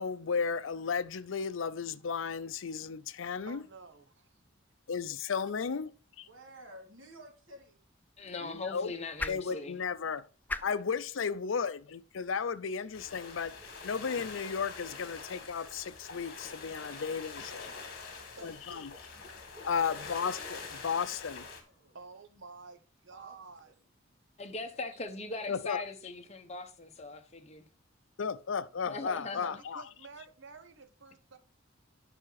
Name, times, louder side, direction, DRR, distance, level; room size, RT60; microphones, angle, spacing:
voice 1, 0.0-3.6 4.9-5.9 6.2-6.3 8.4-8.9 9.3-10.3 10.6-13.6 13.8-17.7 18.4-18.9 19.6-21.5 25.5-25.8 28.2-29.8, left 6 dB, 75° left, 0.5 m, -34 dB
voice 2, 3.5-4.3 18.3-18.9 21.9-23.7 29.3-29.5 29.7-31.4, right 4 dB, 65° right, 0.9 m, -51 dB
voice 3, 6.2-7.8 21.5-22.0 23.1-23.4 23.6-23.7 24.7-25.0, right 1 dB, 85° right, 2.7 m, -53 dB
sound 1, 7.4-13.6, left 2 dB, 10° left, 0.4 m, -45 dB
voice 4, 8.2-9.8 24.4-27.7 28.9-29.6, left 3 dB, 35° left, 1.1 m, -40 dB
sound 2, 12.9-21.6, left 4 dB, 55° left, 2.0 m, -45 dB
9.1 x 5.7 x 4.0 m
head